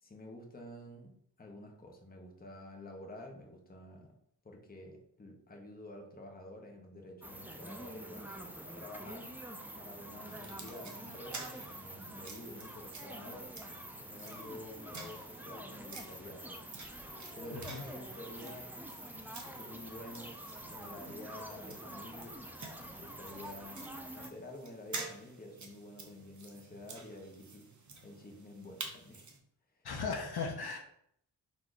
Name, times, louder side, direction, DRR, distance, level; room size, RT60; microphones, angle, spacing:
voice 1, 0.0-4.1 4.4-9.3 9.8-13.5 14.0-16.6 17.3-18.8 19.5-20.3 20.7-22.4 23.0-27.7 28.0-29.3 29.8-29.9, left 1 dB, 20° left, 1 dB, 0.8 m, -49 dB
sound 1, 7.2-24.3, right 1 dB, 5° right, 0.4 m, -47 dB
sound 2, 10.3-29.4, right 4 dB, 40° right, 0.8 m, -50 dB
voice 2, 17.5-17.8 29.8-30.8, left 4 dB, 60° left, 1 dB, 0.8 m, -37 dB
4.3 x 2.7 x 4.6 m, 0.70 s
wide cardioid pair, 125°, 44 cm